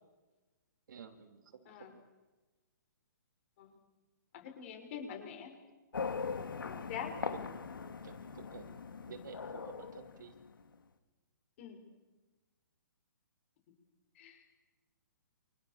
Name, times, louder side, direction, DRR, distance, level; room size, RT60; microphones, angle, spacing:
voice 1, 0.9-2.1 6.7-6.9 7.3-7.4 8.0-8.8 9.1-10.4, right 7 dB, 65° right, 4 dB, 3.7 m, -51 dB
voice 2, 4.3-5.5 6.6-7.5 11.6-11.8 14.1-14.4, left 7 dB, 40° left, 5 dB, 6.1 m, -45 dB
sound 1, 5.9-10.7, left 5 dB, 90° left, 2.7 m, -41 dB
29.0 x 27.0 x 6.8 m, 1.2 s
hypercardioid pair, 155°, 11 cm